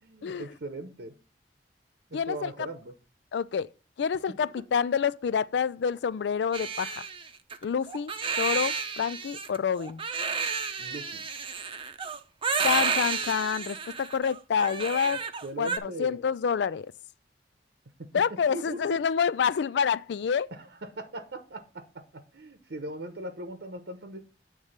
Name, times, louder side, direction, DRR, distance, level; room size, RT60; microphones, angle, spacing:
voice 1, 0.0-1.2 2.1-2.9 10.8-11.2 15.4-16.2 18.0-18.1 18.5-19.0 20.5-24.2, right 1 dB, 70° right, 0.9 m, -39 dB
voice 2, 2.1-2.5 3.3-3.7 4.0-7.0 7.6-10.0 12.6-15.2 15.6-16.9 18.1-20.5, left 6 dB, 70° left, 0.4 m, -28 dB
Crying sobbing, 6.5-15.8, right 5 dB, 30° right, 0.7 m, -31 dB
8.9 x 3.2 x 6.4 m
head